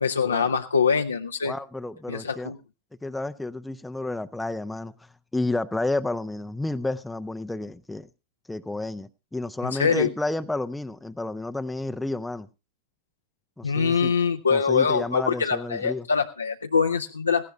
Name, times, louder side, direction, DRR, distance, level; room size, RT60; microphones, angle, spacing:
voice 1, 0.0-1.5 2.1-2.6 9.6-10.1 13.6-17.4, left 6 dB, 75° left, 0.6 m, -24 dB
voice 2, 1.4-2.5 3.0-8.1 8.5-12.5 13.6-14.1 14.5-16.1, left 2 dB, 5° left, 0.6 m, -31 dB
18.0 x 16.5 x 2.3 m
figure-of-eight pair, 90°, 0 cm